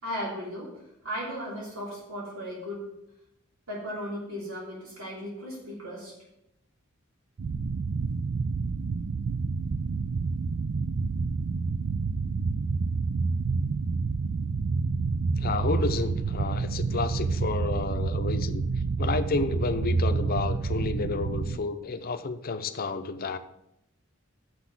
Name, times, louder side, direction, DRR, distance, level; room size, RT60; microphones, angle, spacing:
voice 1, 0.0-2.9 3.7-6.1, equal, 80° right, -4 dB, 3.1 m, -36 dB
sound 1, 7.4-21.6, right 4 dB, 55° right, 0.4 m, -28 dB
voice 2, 15.4-18.6 19.0-23.4, left 3 dB, 45° left, 9 dB, 0.7 m, -31 dB
7.1 x 6.1 x 7.4 m, 0.82 s
head